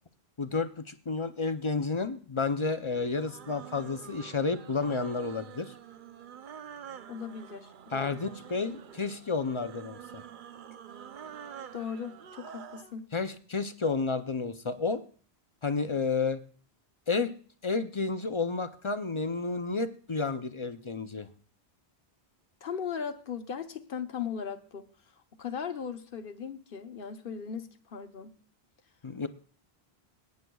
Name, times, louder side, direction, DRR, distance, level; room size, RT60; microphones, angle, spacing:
voice 1, 0.4-5.7 7.9-10.0 13.1-15.0 15.6-16.4 17.1-17.3 17.6-21.3 29.0-29.3, left 4 dB, 35° left, 0.5 m, -31 dB
sound 1, 3.0-12.9, right 8 dB, 55° right, 0.7 m, -47 dB
voice 2, 7.1-8.4 11.7-13.1 22.6-24.9 25.4-28.4, left 7 dB, 60° left, 1.1 m, -38 dB
21.0 x 9.5 x 2.3 m
omnidirectional pair, 1.1 m